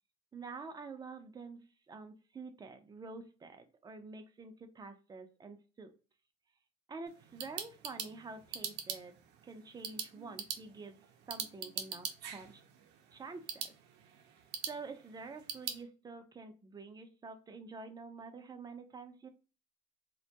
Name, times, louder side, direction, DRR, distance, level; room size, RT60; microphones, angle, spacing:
voice 1, 0.3-5.9 6.9-9.1 9.4-11.0 11.3-12.6 13.1-13.7 14.7-19.3, right 4 dB, 25° right, 0.5 m, -48 dB
sound 1, 7.1-15.8, right 8 dB, 90° right, 0.5 m, -44 dB
2.2 x 2.1 x 2.7 m
cardioid pair, 110°, 17 cm